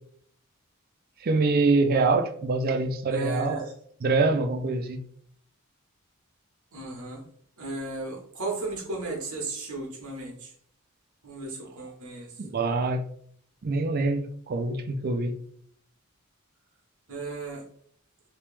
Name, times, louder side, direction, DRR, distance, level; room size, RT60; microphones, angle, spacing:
voice 1, 1.2-3.7 4.0-5.0 12.4-13.1 13.6-15.4, right 3 dB, 45° right, 0.4 m, -25 dB
voice 2, 3.1-3.7 6.7-7.2 7.6-10.5 11.2-12.3 17.1-17.6, right 3 dB, 90° right, 1.3 m, -35 dB
3.2 x 2.9 x 3.3 m
head